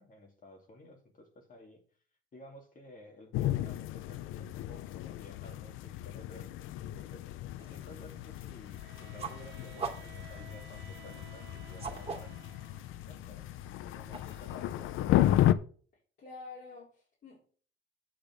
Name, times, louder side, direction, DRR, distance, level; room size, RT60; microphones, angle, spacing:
voice 1, 0.0-1.8 2.3-12.5 13.0-13.5 13.8-15.2, left 1 dB, 40° left, 2.8 m, -54 dB
sound 1, 3.3-15.5, left 13 dB, 90° left, 0.5 m, -33 dB
sound 2, 7.6-15.0, right 5 dB, 30° right, 2.4 m, -46 dB
Bowed string instrument, 8.7-13.0, right 9 dB, 70° right, 1.1 m, -55 dB
voice 2, 16.2-17.4, left 3 dB, 60° left, 4.3 m, -48 dB
8.8 x 5.1 x 6.4 m
cardioid pair, 90°, 20 cm